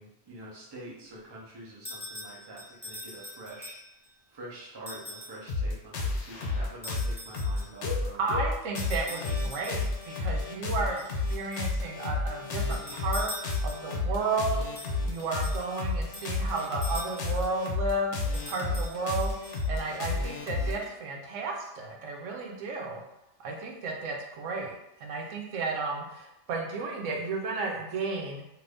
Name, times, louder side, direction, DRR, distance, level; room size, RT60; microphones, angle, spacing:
voice 1, 0.0-8.2, right 1 dB, 25° right, -5 dB, 0.6 m, -46 dB
sound 1, 1.9-4.1 4.9-5.5 6.8-7.8 8.8-10.1 11.0-11.8 12.6-14.0 14.8-17.5 18.2-19.9, left 1 dB, 10° left, 0.7 m, -44 dB
sound 2, 5.5-20.9, left 3 dB, 70° left, 0.9 m, -31 dB
voice 2, 8.2-23.0 23.4-28.4, right 3 dB, 85° right, 0 dB, 1.0 m, -33 dB
2.6 x 2.6 x 3.4 m, 0.87 s
omnidirectional pair, 1.3 m